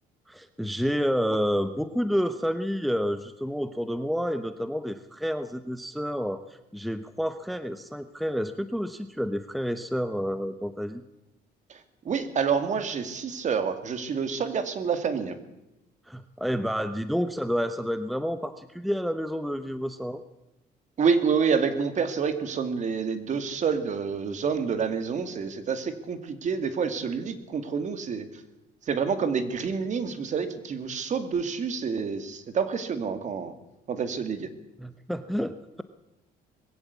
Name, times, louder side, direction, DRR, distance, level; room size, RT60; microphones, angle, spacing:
voice 1, 0.3-11.0 16.1-20.2 34.8-35.8, equal, ahead, 11 dB, 0.9 m, -29 dB
voice 2, 12.0-15.4 21.0-28.3 28.9-33.5 33.9-34.5, right 6 dB, 45° right, 10 dB, 2.5 m, -28 dB
21.0 x 15.5 x 8.4 m, 0.93 s
cardioid pair, 110°, 17 cm